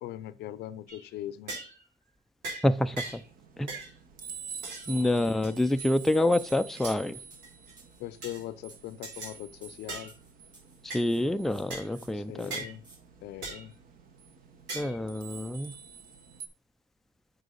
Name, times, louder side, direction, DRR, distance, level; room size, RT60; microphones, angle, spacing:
voice 1, 0.0-1.7 4.8-5.4 8.0-10.1 12.1-12.8 13.2-13.7, left 13 dB, 80° left, 0.6 m, -41 dB
sound 1, 0.9-1.1 1.5-1.8 2.4-2.7 3.0-3.3 3.7-3.9 4.6-4.9 5.4-5.9 6.5-7.0 7.4-7.7 8.2-8.4 9.0-9.3 9.9-10.1 10.9-11.0 11.7-11.9 12.5-12.7 13.4-13.7 14.7-15.0, right 3 dB, 90° right, 3.2 m, -39 dB
voice 2, 2.6-3.2 3.6-3.7 4.9-7.2 10.9-12.6 14.7-15.7, left 1 dB, ahead, 0.4 m, -27 dB
sound 2, 2.7-16.5, right 6 dB, 55° right, 1.3 m, -48 dB
sound 3, 5.9-6.1 6.4-10.8 11.0-11.6 11.9-12.1 12.4-13.0, right 3 dB, 25° right, 3.8 m, -57 dB
8.0 x 5.6 x 3.9 m
cardioid pair, 110°, 17 cm